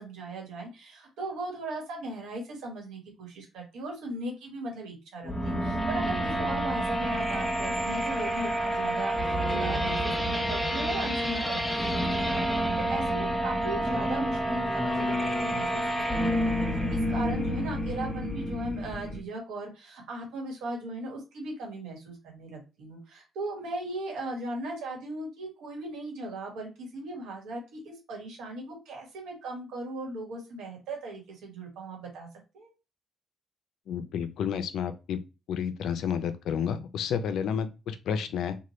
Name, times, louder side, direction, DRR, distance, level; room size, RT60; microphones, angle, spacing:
voice 1, 0.0-16.5 16.9-32.3 32.5-32.7, right 2 dB, 90° right, 1 dB, 1.3 m, -38 dB
sound 1, 5.2-19.2, equal, 5° left, 0.6 m, -29 dB
voice 2, 33.9-35.2 35.5-38.6, left 7 dB, 75° left, 10 dB, 0.5 m, -30 dB
2.9 x 2.3 x 3.0 m, 0.28 s
cardioid pair, 90°, 0 cm